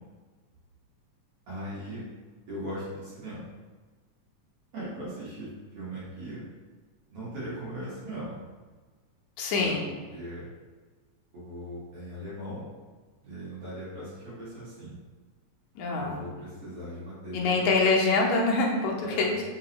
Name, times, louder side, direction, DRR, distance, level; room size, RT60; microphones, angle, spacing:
voice 1, 1.5-2.0 2.5-3.5 4.7-6.4 7.1-8.4 9.6-9.8 10.1-10.5 11.3-12.6 13.2-15.0 15.9-17.7 19.0-19.3, right 1 dB, 60° right, -9 dB, 1.9 m, -39 dB
voice 2, 9.4-9.8 15.8-16.2 17.3-19.4, left 3 dB, 85° left, -1 dB, 2.0 m, -25 dB
5.0 x 2.3 x 2.8 m, 1.4 s
omnidirectional pair, 3.4 m